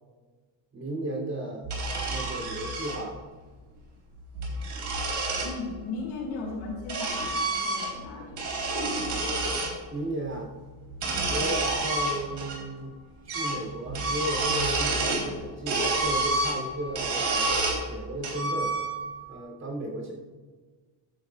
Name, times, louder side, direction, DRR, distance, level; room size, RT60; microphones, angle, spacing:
voice 1, 0.7-1.7 2.0-3.3 9.9-10.5 11.3-12.9 13.2-17.4 17.9-18.7 19.3-20.1, right 1 dB, 35° right, -1 dB, 3.1 m, -34 dB
sound 1, 1.6-3.0 4.2-5.5 6.4-8.1 8.3-9.7 10.9-12.6 12.8-12.9 13.3-13.6 13.9-15.3 15.7-17.8 18.2-19.2, right 2 dB, 60° right, 3.4 m, -29 dB
voice 2, 5.4-8.4, left 3 dB, 90° left, -2 dB, 2.6 m, -37 dB
14.0 x 9.7 x 2.4 m, 1.4 s
cardioid pair, 120°, 47 cm